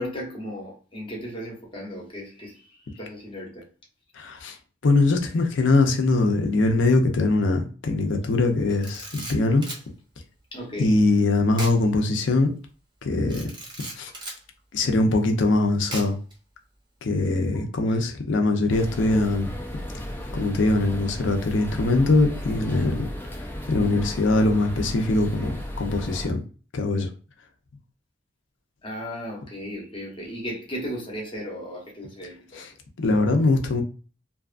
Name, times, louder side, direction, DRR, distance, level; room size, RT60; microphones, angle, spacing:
voice 1, 0.0-3.7 10.5-11.1 17.5-18.1 28.8-32.7, equal, 25° left, 0.8 m, -36 dB
voice 2, 4.2-4.6 4.8-9.6 10.8-12.5 13.0-13.5 14.0-14.1 14.7-16.2 17.0-19.5 20.3-23.1 23.7-26.4 26.7-27.1 32.5-32.7 33.0-33.8, left 2 dB, 70° left, 0.5 m, -22 dB
Camera, 8.7-9.9 11.5-11.8 12.2-12.3 13.3-14.4 15.9-16.3, right 1 dB, 25° right, 0.7 m, -37 dB
sound 1, 18.7-26.3, equal, 10° left, 0.4 m, -35 dB
2.6 x 2.3 x 2.4 m
head